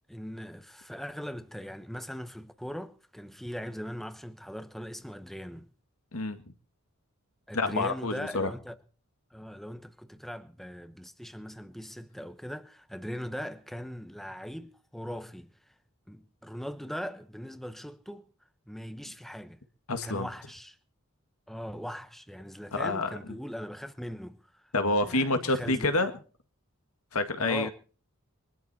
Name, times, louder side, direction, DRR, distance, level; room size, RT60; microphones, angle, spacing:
voice 1, 0.1-5.7 7.5-8.8 9.3-15.7 16.1-18.3 18.7-19.6 20.0-20.8 21.5-24.7 25.0-26.1 27.4-27.7, equal, ahead, 1.0 m, -40 dB
voice 2, 7.5-8.5 19.9-20.3 22.7-23.1 24.7-26.1 27.1-27.7, left 2 dB, 80° left, 1.9 m, -28 dB
22.0 x 12.5 x 4.3 m
head